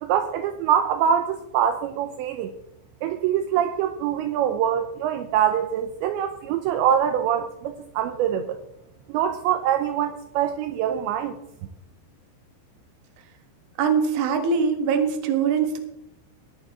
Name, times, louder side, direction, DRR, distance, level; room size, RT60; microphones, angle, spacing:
voice 1, 0.0-2.5 3.0-8.6 9.1-11.4, right 9 dB, 80° right, 7 dB, 2.7 m, -24 dB
voice 2, 13.8-15.8, right 6 dB, 60° right, 6 dB, 2.3 m, -22 dB
22.0 x 9.1 x 3.7 m, 0.84 s
omnidirectional pair, 5.6 m